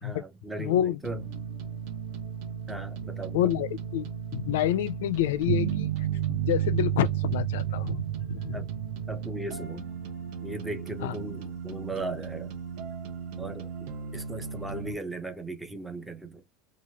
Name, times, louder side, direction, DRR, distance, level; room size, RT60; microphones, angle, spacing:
voice 1, 0.0-1.3 2.7-3.6 8.5-8.7 9.1-9.9 10.4-12.5 13.4-16.4, right 2 dB, 5° right, 0.5 m, -37 dB
voice 2, 0.6-1.0 3.3-5.9 6.3-8.0 8.3-8.6 11.0-11.1, left 12 dB, 90° left, 0.4 m, -28 dB
sound 1, 1.0-14.9, right 6 dB, 50° right, 0.8 m, -38 dB
sound 2, 5.5-9.7, right 15 dB, 80° right, 0.4 m, -30 dB
3.0 x 2.4 x 2.7 m
supercardioid pair, 175°, 0 cm